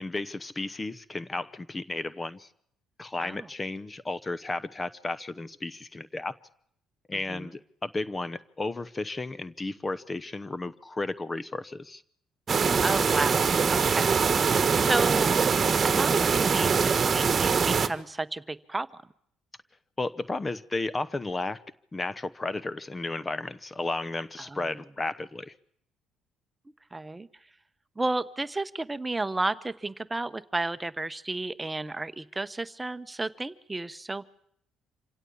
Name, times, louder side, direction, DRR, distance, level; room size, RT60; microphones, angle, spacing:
voice 1, 0.0-2.5 3.0-6.3 7.1-12.0 20.0-21.6 21.9-25.5, left 2 dB, 25° left, 18 dB, 0.9 m, -33 dB
sound 1, 12.5-17.9, right 5 dB, 40° right, 1.5 m, -23 dB
voice 2, 12.8-14.2 14.7-15.3 15.8-18.9 24.5-24.6 26.9-27.3 28.0-34.2, right 2 dB, 15° right, 14 dB, 1.0 m, -32 dB
26.5 x 17.0 x 8.6 m, 0.70 s
supercardioid pair, 75°, 0 cm